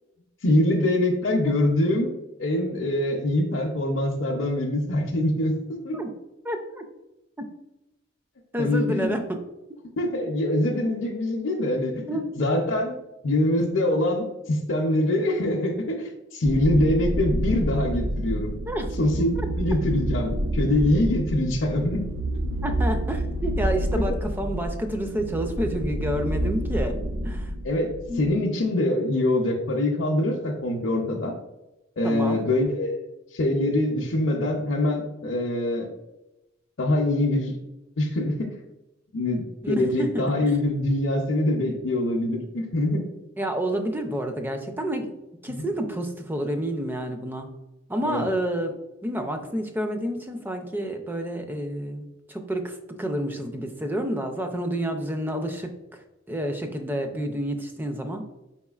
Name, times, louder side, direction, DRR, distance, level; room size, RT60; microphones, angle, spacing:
voice 1, 0.4-2.1 2.4-6.0 8.6-9.1 10.0-12.0 12.4-13.0 13.2-18.5 19.0-22.0 23.9-24.0 27.6-27.9 28.2-31.3 32.0-33.0 33.3-35.9 36.8-37.5 38.0-38.5 39.1-43.1 45.5-45.7 48.0-48.3, left 1 dB, 65° left, -2 dB, 0.5 m, -24 dB
voice 2, 6.4-6.8 7.4-7.5 8.5-9.4 12.0-12.3 18.7-18.9 22.6-27.0 27.2-27.5 28.1-28.2 32.0-32.4 39.6-40.2 43.4-45.1 45.4-47.5 47.9-48.8 49.0-58.2, equal, 10° right, 5 dB, 0.4 m, -29 dB
sound 1, 16.4-28.2, right 1 dB, 85° right, 0.6 m, -28 dB
4.3 x 4.2 x 2.3 m, 0.97 s
head